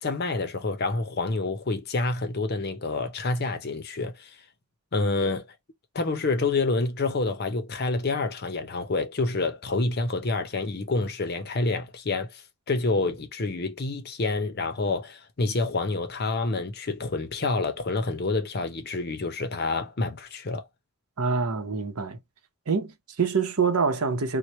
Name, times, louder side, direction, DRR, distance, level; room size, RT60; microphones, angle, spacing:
voice 1, 0.0-4.4 4.9-5.5 5.9-20.6, left 3 dB, 45° left, 0.6 m, -28 dB
voice 2, 21.2-22.2 22.7-24.4, right 5 dB, 80° right, 0.8 m, -26 dB
3.0 x 2.1 x 4.1 m
head